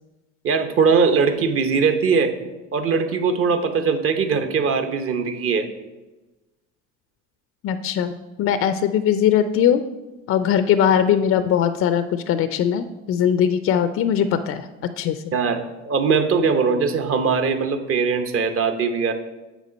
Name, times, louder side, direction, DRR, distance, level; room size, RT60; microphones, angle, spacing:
voice 1, 0.4-2.3 2.7-5.7 15.3-19.1, right 5 dB, 40° right, 8 dB, 0.9 m, -20 dB
voice 2, 7.6-9.8 10.3-14.7 15.0-15.3, left 9 dB, 40° left, 11 dB, 0.5 m, -20 dB
8.3 x 3.8 x 5.1 m, 1.1 s
hypercardioid pair, 85°, 36 cm